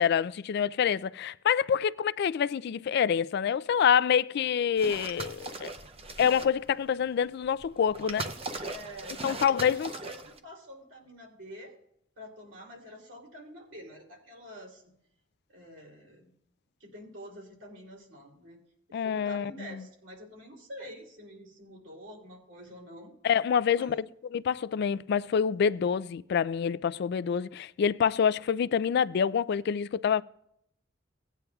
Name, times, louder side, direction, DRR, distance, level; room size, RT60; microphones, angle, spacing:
voice 1, 0.0-5.7 6.2-8.3 9.2-9.9 18.9-19.8 23.2-24.0 24.3-30.2, left 7 dB, 60° left, 0.3 m, -26 dB
sound 1, 4.8-6.7 7.4-10.4, right 3 dB, 30° right, 0.7 m, -39 dB
voice 2, 8.7-11.7 12.2-14.8 15.5-16.3 16.8-18.6 18.9-23.2 23.7-24.0, equal, 70° right, 3.0 m, -47 dB
18.0 x 9.1 x 2.3 m
head